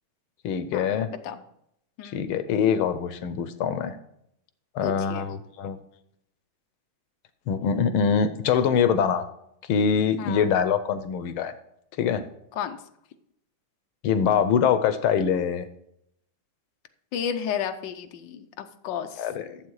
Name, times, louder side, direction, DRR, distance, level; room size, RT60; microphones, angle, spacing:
voice 1, 0.4-1.1 2.0-4.0 4.7-5.8 7.5-9.2 9.7-11.5 12.0-12.3 14.0-15.7 19.2-19.6, left 7 dB, 90° left, 11 dB, 1.7 m, -24 dB
voice 2, 4.8-5.3 10.2-10.5 12.6-12.8 17.1-19.3, left 8 dB, 65° left, 7 dB, 1.5 m, -32 dB
12.5 x 7.4 x 4.7 m, 0.75 s
omnidirectional pair, 2.2 m